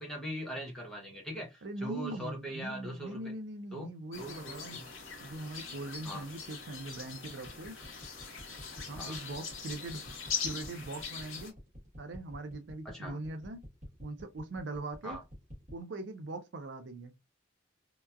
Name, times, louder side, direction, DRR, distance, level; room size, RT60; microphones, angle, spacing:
voice 1, 0.0-3.3 3.7-3.9 4.2-4.8 6.0-6.2 9.0-9.1 12.8-13.2 15.0-15.2, equal, 5° left, 0.9 m, -41 dB
voice 2, 1.6-4.8 5.2-7.8 8.9-10.1 10.4-11.5 12.0-13.6 14.0-15.2 15.7-17.1, right 2 dB, 65° right, 0.5 m, -41 dB
sound 1, 4.1-11.5, left 6 dB, 90° left, 0.9 m, -41 dB
sound 2, 7.3-15.8, equal, 40° right, 1.1 m, -49 dB
2.8 x 2.2 x 2.3 m
head